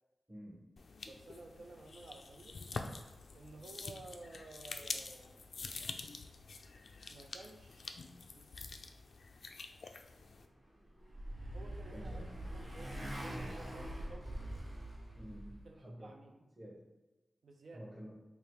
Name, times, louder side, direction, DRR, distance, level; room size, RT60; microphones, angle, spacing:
voice 1, 0.3-0.6 11.9-12.3 15.1-16.2 16.6-16.8 17.7-18.2, equal, 15° right, -6 dB, 0.7 m, -50 dB
sound 1, 0.8-10.5, left 4 dB, 70° left, 0.3 m, -47 dB
voice 2, 1.0-2.6 3.3-5.5 7.1-8.0 8.3-8.5 11.5-12.3 12.5-14.3 15.6-16.3 17.4-17.8, right 2 dB, 75° right, 3 dB, 0.3 m, -54 dB
Motorcycle, 10.6-15.6, right 1 dB, 50° right, 1.4 m, -44 dB
3.3 x 2.3 x 4.3 m, 1.1 s
wide cardioid pair, 90°, 0 cm